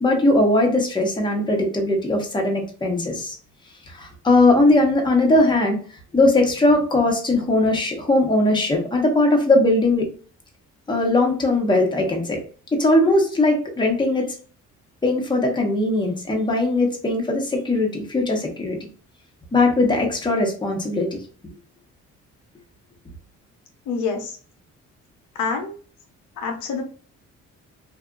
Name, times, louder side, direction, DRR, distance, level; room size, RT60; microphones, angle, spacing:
voice 1, 0.0-3.3 3.9-5.8 6.1-10.1 10.9-12.4 12.7-14.3 15.0-18.9 19.5-21.2, left 2 dB, 15° left, 1 dB, 0.8 m, -19 dB
voice 2, 23.9-24.4 25.3-25.7 26.4-26.8, left 5 dB, 85° left, 3 dB, 0.7 m, -26 dB
2.7 x 2.4 x 2.3 m, 0.41 s
cardioid pair, 90°, 30 cm